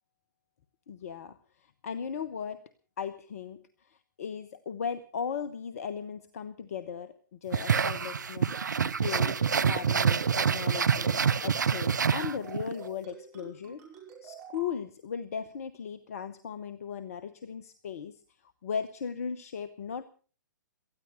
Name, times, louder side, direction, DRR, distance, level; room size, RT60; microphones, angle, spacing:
voice 1, 0.9-2.7 3.0-3.6 3.9-8.5 9.0-13.8 14.2-18.2 18.6-20.0, left 7 dB, 50° left, 15 dB, 1.0 m, -37 dB
sound 1, 7.5-12.7, right 6 dB, 65° right, 0.7 m, -27 dB
sound 2, 7.9-8.2 8.5-8.8 9.1-9.4 9.7-10.0 10.3-10.6 10.9-11.2 11.5-11.8 12.1-14.8, right 6 dB, 25° right, 5.5 m, -49 dB
19.0 x 14.0 x 5.4 m, 0.41 s
figure-of-eight pair, 120°, 11 cm